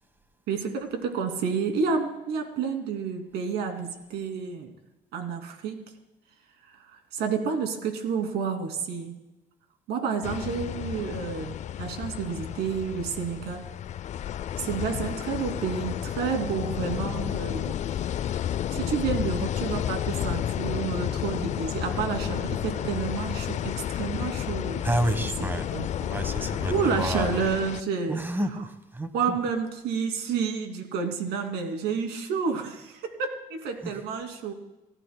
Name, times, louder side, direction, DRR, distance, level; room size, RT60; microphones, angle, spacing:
voice 1, 0.5-4.7 5.1-5.8 7.1-9.1 9.9-13.7 14.6-17.7 18.7-24.8 25.7-25.9 26.3-28.2 29.1-34.5, right 6 dB, 85° right, 4 dB, 2.5 m, -30 dB
sound 1, 10.2-27.8, left 10 dB, 45° left, 0.4 m, -31 dB
voice 2, 24.8-25.7 26.0-27.5 28.1-29.4 33.8-34.0, right 1 dB, 10° right, 10 dB, 1.2 m, -30 dB
29.5 x 14.0 x 2.2 m, 0.98 s
cardioid pair, 110°, 17 cm